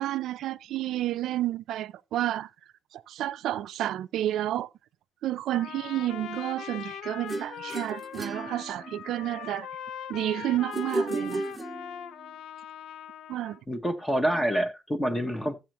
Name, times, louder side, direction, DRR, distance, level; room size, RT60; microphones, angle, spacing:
voice 1, 0.0-2.5 2.9-4.7 5.2-9.7 10.1-11.4 13.3-13.6, right 13 dB, 85° right, 0.5 m, -30 dB
Trumpet, 5.5-13.6, left 9 dB, 75° left, 0.5 m, -41 dB
sound 1, 7.3-9.2 10.7-12.3, right 2 dB, 15° right, 0.5 m, -34 dB
voice 2, 13.7-15.7, equal, 10° left, 0.9 m, -27 dB
13.5 x 7.8 x 3.0 m
cardioid pair, 150°, 0 cm